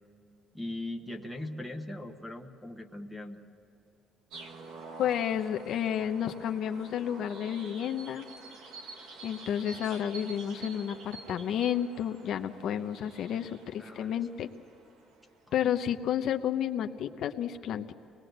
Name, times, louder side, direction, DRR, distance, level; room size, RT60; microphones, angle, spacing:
voice 1, 0.5-3.4 13.8-14.2, left 1 dB, ahead, 5 dB, 1.4 m, -39 dB
sound 1, 4.3-15.4, right 3 dB, 80° right, 1.8 m, -48 dB
voice 2, 5.0-8.2 9.2-14.5 15.5-17.9, left 9 dB, 60° left, 6 dB, 0.9 m, -31 dB
25.5 x 20.5 x 8.0 m, 2.8 s
cardioid pair, 155°, 0 cm